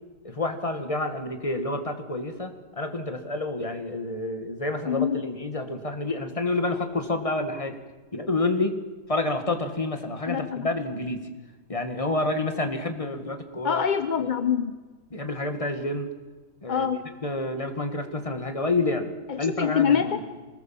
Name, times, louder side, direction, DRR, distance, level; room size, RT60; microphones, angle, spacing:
voice 1, 0.2-7.8 8.1-8.8 9.1-11.3 11.7-13.8 14.2-14.3 15.1-16.1 16.6-16.9 17.2-20.2, left 2 dB, 20° left, 6 dB, 1.9 m, -29 dB
voice 2, 4.9-5.3 10.3-10.7 13.6-14.8 16.7-17.1 19.3-20.3, left 7 dB, 40° left, 10 dB, 0.7 m, -25 dB
24.5 x 20.0 x 7.5 m, 1.2 s
omnidirectional pair, 1.6 m